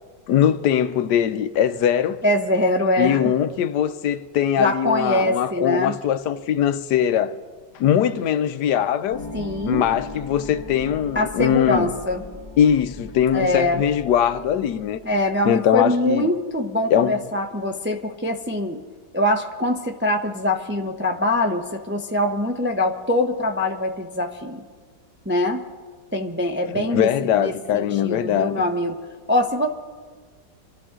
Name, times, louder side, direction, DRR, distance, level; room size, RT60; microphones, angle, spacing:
voice 1, 0.3-2.2 3.0-7.3 7.7-9.2 9.7-11.9 12.6-15.0 15.4-16.2 16.9-17.1 26.7-28.6, left 9 dB, 75° left, 1.2 m, -21 dB
voice 2, 2.2-3.3 4.6-5.9 9.3-9.9 11.1-12.2 13.3-13.8 15.0-18.8 19.1-24.6 25.3-25.6 26.1-27.1 27.4-29.0 29.3-29.7, left 1 dB, 15° right, 0.4 m, -23 dB
sound 1, 9.1-15.2, left 3 dB, 10° left, 2.3 m, -39 dB
26.0 x 13.5 x 3.7 m
omnidirectional pair, 1.8 m